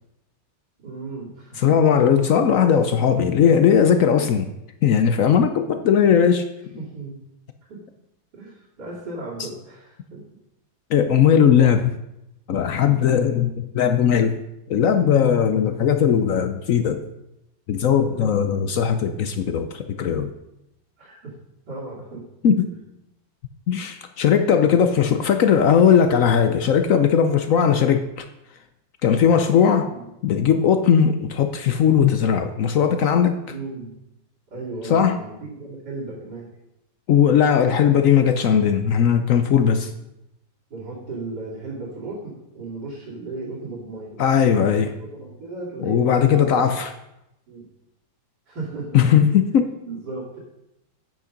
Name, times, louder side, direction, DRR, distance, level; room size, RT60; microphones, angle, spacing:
voice 1, 0.8-1.7 4.2-4.3 6.7-7.2 7.7-7.8 8.3-10.2 12.9-13.1 17.9-18.3 21.0-21.3 21.7-22.2 29.8-30.1 33.5-34.0 34.5-36.5 40.7-44.2 44.5-46.7 47.5-47.7 48.5-49.3 49.8-50.4, right 3 dB, 55° right, 3.3 m, -35 dB
voice 2, 1.6-4.5 4.8-6.5 10.9-11.9 12.5-14.4 14.7-17.0 17.7-20.3 22.4-22.7 23.7-28.3 29.0-29.9 30.2-33.4 34.9-35.2 37.1-39.9 44.2-44.9 45.8-46.9 48.9-49.7, left 8 dB, 70° left, 0.7 m, -18 dB
9.3 x 8.4 x 5.1 m
omnidirectional pair, 2.1 m